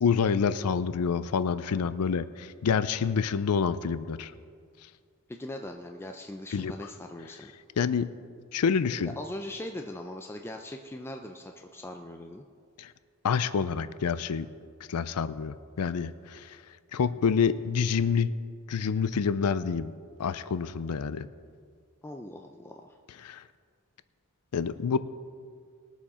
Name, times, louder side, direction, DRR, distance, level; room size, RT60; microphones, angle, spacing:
voice 1, 0.0-4.3 6.5-6.7 7.8-8.1 8.5-9.1 12.8-12.9 13.2-14.5 14.9-16.6 16.9-18.3 18.7-19.9 20.2-21.3 23.2-23.4 24.5-25.0, left 6 dB, 90° left, 14 dB, 0.5 m, -27 dB
voice 2, 5.3-7.5 9.2-12.5 22.0-23.0, left 1 dB, 10° left, 3 dB, 0.4 m, -40 dB
20.5 x 7.2 x 4.3 m, 2.1 s
head